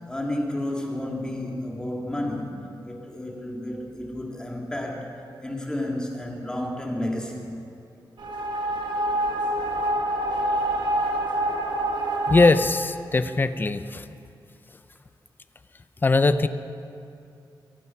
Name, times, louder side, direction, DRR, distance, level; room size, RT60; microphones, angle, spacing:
voice 1, 0.1-7.5, left 1 dB, 10° left, -1 dB, 2.0 m, -31 dB
sound 1, 8.2-12.5, right 1 dB, 70° right, 1.4 m, -26 dB
voice 2, 12.3-14.1 16.0-16.5, left 3 dB, 25° left, 12 dB, 0.5 m, -20 dB
23.0 x 7.9 x 5.9 m, 2.6 s
wide cardioid pair, 155°, 8 cm